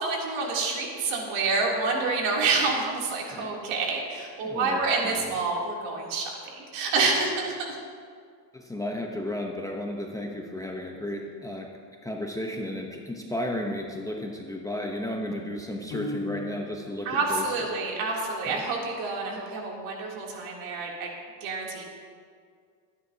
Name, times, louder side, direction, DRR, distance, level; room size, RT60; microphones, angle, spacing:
voice 1, 0.0-7.7 17.0-21.1 21.4-21.8, right 3 dB, 60° right, -2 dB, 3.2 m, -28 dB
voice 2, 4.4-5.3 8.5-11.7 12.0-17.5 18.5-18.6, left 1 dB, 5° left, 0 dB, 0.8 m, -34 dB
Piano, 15.9-16.9, left 1 dB, 40° left, 1.9 m, -35 dB
20.5 x 9.9 x 2.8 m, 2.1 s
supercardioid pair, 120°, 49 cm